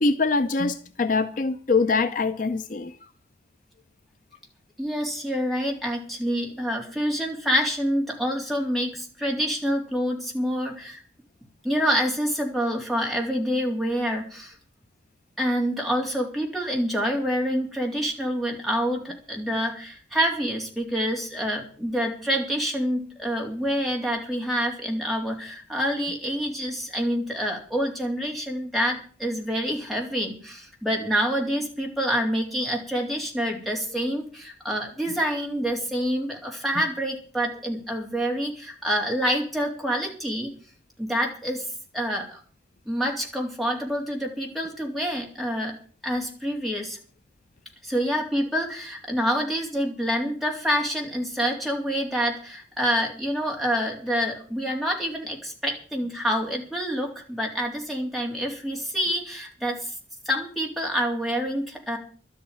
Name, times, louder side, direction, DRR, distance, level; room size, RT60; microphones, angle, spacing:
voice 1, 0.0-2.9, left 3 dB, 50° left, 0.6 m, -23 dB
voice 2, 4.8-11.0 11.6-14.5 15.4-40.5 41.0-41.6 41.9-42.4 42.9-45.7 46.0-47.0 47.8-59.9 60.3-62.0, equal, ahead, 3.5 m, -27 dB
12.0 x 8.6 x 9.2 m
head